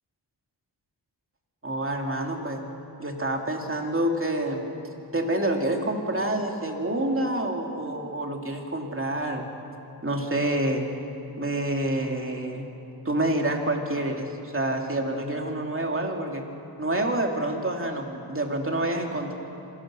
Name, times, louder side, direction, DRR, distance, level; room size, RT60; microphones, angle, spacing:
voice 1, 1.6-2.6 3.0-4.6 5.1-9.5 10.0-10.8 11.4-12.7 13.0-16.4 16.8-19.3, right 1 dB, 30° right, 2 dB, 2.8 m, -27 dB
26.5 x 18.0 x 6.3 m, 2.8 s
wide cardioid pair, 75°, 41 cm